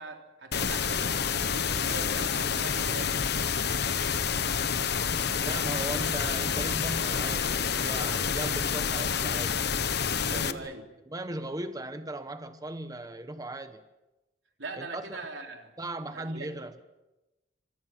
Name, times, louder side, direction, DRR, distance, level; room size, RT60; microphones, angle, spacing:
voice 1, 0.0-3.2 10.2-10.9 14.6-15.7 16.1-16.7, right 3 dB, 90° right, 3 dB, 3.6 m, -41 dB
sound 1, 0.5-10.5, left 6 dB, 65° left, 1.1 m, -28 dB
voice 2, 5.4-9.6 10.3-10.8 11.1-13.8 14.8-15.2 15.8-16.8, right 2 dB, 20° right, 9 dB, 1.1 m, -38 dB
27.5 x 26.0 x 6.1 m, 1.0 s
head